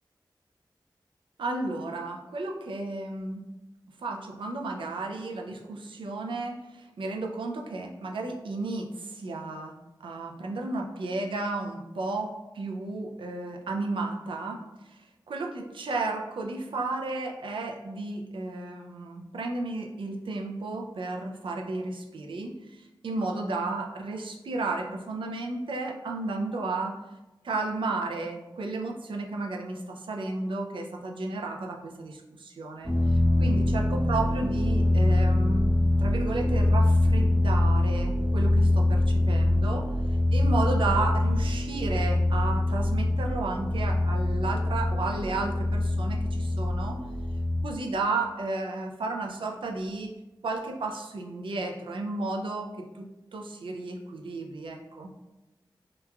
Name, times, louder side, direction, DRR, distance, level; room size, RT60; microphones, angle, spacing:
voice 1, 1.4-3.5 4.0-9.7 10.0-14.6 15.3-27.0 27.4-35.7 36.0-39.9 40.3-47.0 47.6-50.1 50.4-55.1, right 3 dB, 85° right, 1 dB, 0.3 m, -33 dB
sound 1, 32.8-47.6, left 1 dB, ahead, 0.8 m, -24 dB
2.9 x 2.2 x 2.3 m, 1.0 s
cardioid pair, 50°, 9 cm